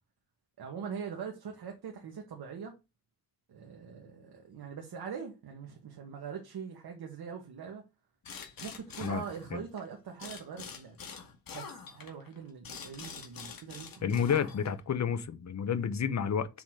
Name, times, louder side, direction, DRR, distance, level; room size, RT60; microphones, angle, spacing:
voice 1, 0.6-2.7 3.5-7.8 8.6-11.0 11.5-14.2, right 6 dB, 75° right, 1.8 m, -42 dB
sound 1, 8.2-9.8 10.2-14.9, left 6 dB, 60° left, 2.2 m, -45 dB
voice 2, 14.0-16.5, left 7 dB, 45° left, 1.0 m, -30 dB
7.0 x 4.1 x 4.8 m
wide cardioid pair, 130°, 38 cm